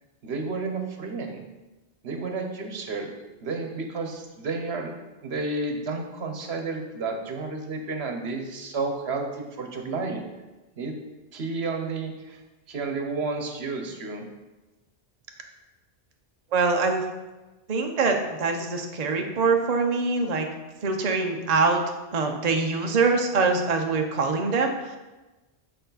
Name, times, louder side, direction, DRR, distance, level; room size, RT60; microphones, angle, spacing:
voice 1, 0.2-1.5 2.0-3.1 3.4-4.9 5.2-10.2 10.8-11.0 11.3-12.4 12.7-14.3, right 3 dB, 70° right, 4 dB, 1.1 m, -31 dB
voice 2, 16.5-17.0 17.7-20.5 20.8-21.8 22.1-25.0, right 4 dB, 40° right, 3 dB, 0.7 m, -24 dB
6.8 x 6.5 x 4.0 m, 1.1 s
omnidirectional pair, 1.1 m